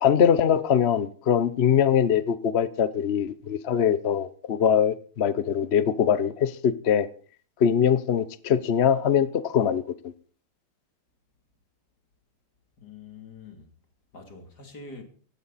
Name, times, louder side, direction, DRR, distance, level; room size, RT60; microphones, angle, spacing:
voice 1, 0.0-7.1 7.6-10.1, left 8 dB, 65° left, 0.6 m, -22 dB
voice 2, 12.8-13.7 14.1-15.0, left 3 dB, 45° left, 3.6 m, -44 dB
17.0 x 16.0 x 4.2 m
omnidirectional pair, 2.4 m